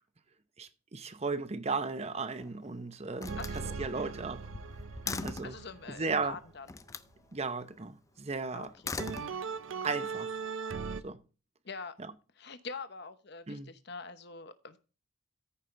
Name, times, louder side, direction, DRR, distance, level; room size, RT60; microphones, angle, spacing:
voice 1, 0.6-4.4 5.2-5.6 5.9-6.4 7.3-8.7 9.8-10.4 11.0-11.2 12.0-12.1 13.5-13.7, right 4 dB, 35° right, 0.8 m, -36 dB
Slam, 2.1-2.7 3.2-5.6 6.7-7.1 8.6-9.8, left 4 dB, 15° left, 0.4 m, -41 dB
sound 1, 3.3-6.7 9.0-11.0, right 5 dB, 85° right, 0.6 m, -39 dB
voice 2, 3.4-4.1 5.0-6.7 8.5-8.9 11.6-11.9 12.4-14.8, left 4 dB, 60° left, 1.0 m, -44 dB
14.0 x 5.5 x 3.3 m
head